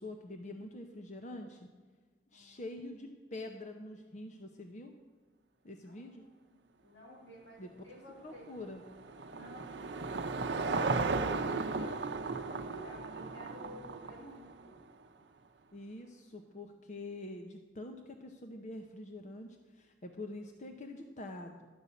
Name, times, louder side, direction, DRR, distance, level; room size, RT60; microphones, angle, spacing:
voice 1, 0.0-1.7 2.3-5.0 5.6-6.2 7.6-7.7 8.2-8.8 15.7-21.7, left 2 dB, 40° left, 4 dB, 0.7 m, -45 dB
voice 2, 5.8-8.5 9.3-10.8 11.3-14.8, equal, 85° left, -2 dB, 3.1 m, -53 dB
Car passing by / Engine, 8.3-14.7, right 3 dB, 70° right, 0.7 m, -35 dB
12.0 x 5.4 x 8.3 m, 1.4 s
head